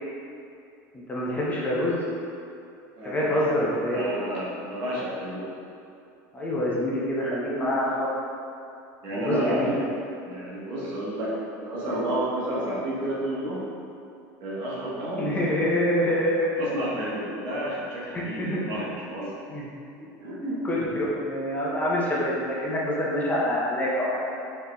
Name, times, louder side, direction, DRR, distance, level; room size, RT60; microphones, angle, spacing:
voice 1, 0.9-2.0 3.0-4.1 6.3-8.1 9.1-9.8 15.2-16.5 18.4-18.8 19.5-19.7 20.4-20.8 21.2-24.2, left 1 dB, 20° left, -6 dB, 0.7 m, -26 dB
voice 2, 2.9-3.4 3.9-5.6 9.0-9.8 10.1-13.6 14.4-15.3 16.6-19.3 20.0-20.6, right 1 dB, 60° right, -7 dB, 1.2 m, -31 dB
4.7 x 3.3 x 2.3 m, 2.6 s
supercardioid pair, 120°, 9 cm